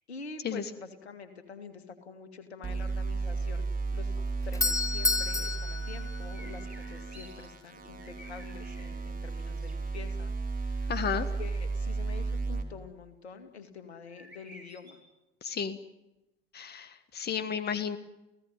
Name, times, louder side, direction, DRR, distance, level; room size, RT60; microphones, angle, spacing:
voice 1, 0.1-4.2 4.4-15.0, left 5 dB, 75° left, 9 dB, 2.5 m, -46 dB
sound 1, 2.6-12.6, right 3 dB, 25° right, 3.9 m, -34 dB
Doorbell, 4.2-7.0, left 3 dB, 10° left, 1.0 m, -31 dB
sound 2, 6.3-7.5 7.8-8.9 9.3-9.7 14.1-14.9, right 1 dB, 80° right, 7.0 m, -52 dB
voice 2, 10.9-11.3 15.4-15.8 16.5-18.0, left 7 dB, 30° left, 13 dB, 1.5 m, -32 dB
29.5 x 16.5 x 9.6 m, 0.98 s
figure-of-eight pair, 65°, 33 cm